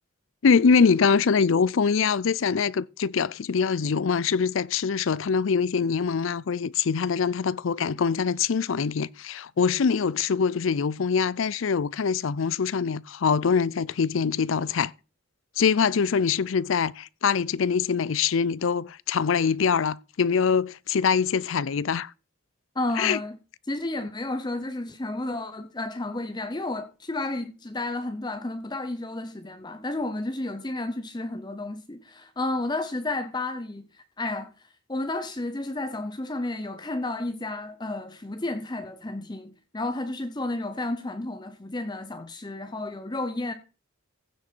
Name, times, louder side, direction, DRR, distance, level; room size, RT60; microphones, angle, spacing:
voice 1, 0.4-14.9 15.6-22.1 23.0-23.2, left 6 dB, 75° left, 0.5 m, -24 dB
voice 2, 22.7-23.4 23.7-33.8 34.2-34.5 34.9-43.5, left 2 dB, 20° left, 0.7 m, -32 dB
15.5 x 6.5 x 4.5 m
head